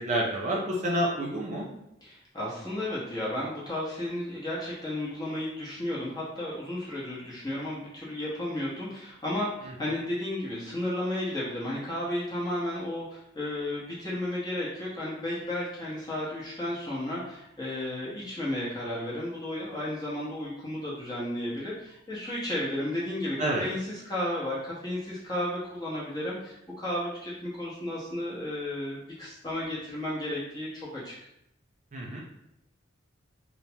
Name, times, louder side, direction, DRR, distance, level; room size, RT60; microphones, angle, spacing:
voice 1, 0.0-1.7 23.4-23.6 31.9-32.2, right 1 dB, 35° right, -2 dB, 0.5 m, -28 dB
voice 2, 2.0-31.1, left 1 dB, 20° left, -6 dB, 0.9 m, -33 dB
3.2 x 2.1 x 2.7 m, 0.80 s
head